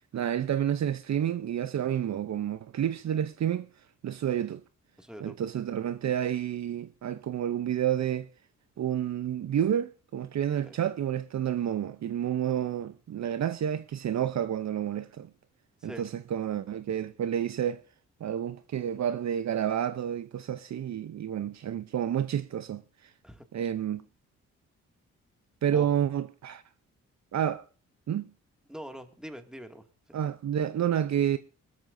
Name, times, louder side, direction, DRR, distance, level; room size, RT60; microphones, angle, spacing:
voice 1, 0.1-3.7 4.0-4.6 5.2-8.3 8.8-15.3 15.8-17.8 18.2-23.1 23.5-24.0 25.6-26.6 27.3-27.6 28.1-28.3 30.1-31.4, right 10 dB, 55° right, 0.7 m, -30 dB
voice 2, 5.0-5.4 10.6-10.8 15.8-16.0 23.2-23.4 25.7-25.9 28.7-30.2, right 1 dB, ahead, 2.3 m, -43 dB
22.5 x 13.0 x 2.7 m
supercardioid pair, 50°, 32 cm